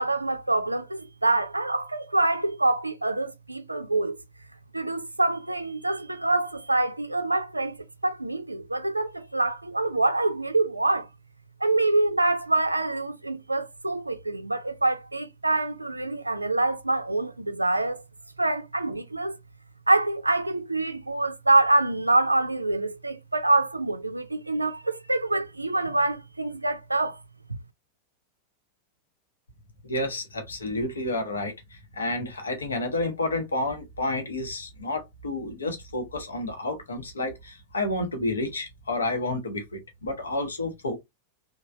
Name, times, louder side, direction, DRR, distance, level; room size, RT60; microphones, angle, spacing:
voice 1, 0.0-4.2 4.7-7.8 8.0-11.1 11.6-18.0 18.4-19.4 19.9-27.2, right 2 dB, 85° right, 0.3 m, -25 dB
voice 2, 29.8-41.0, left 2 dB, 75° left, 0.8 m, -30 dB
3.2 x 2.2 x 2.4 m
figure-of-eight pair, 90°, 0 cm